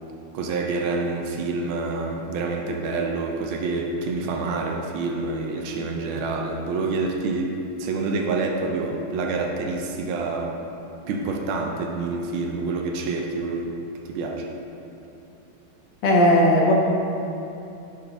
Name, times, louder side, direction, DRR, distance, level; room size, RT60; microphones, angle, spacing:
voice 1, 0.3-7.5 7.8-10.6 11.1-13.7 14.0-14.5, right 3 dB, 80° right, 2 dB, 1.4 m, -27 dB
voice 2, 16.0-16.7, left 1 dB, 65° left, -2 dB, 1.5 m, -16 dB
8.1 x 4.1 x 3.4 m, 2.8 s
omnidirectional pair, 2.3 m